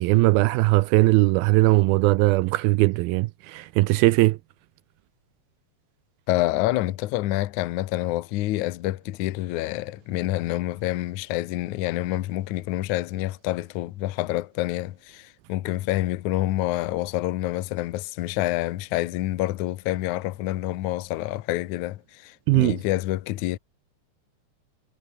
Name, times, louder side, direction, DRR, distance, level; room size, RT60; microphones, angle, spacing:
voice 1, 0.0-4.4 22.5-22.8, right 21 dB, 85° right, 2.1 m, -19 dB
voice 2, 6.3-23.6, left 16 dB, 85° left, 1.7 m, -27 dB
omnidirectional pair, 4.8 m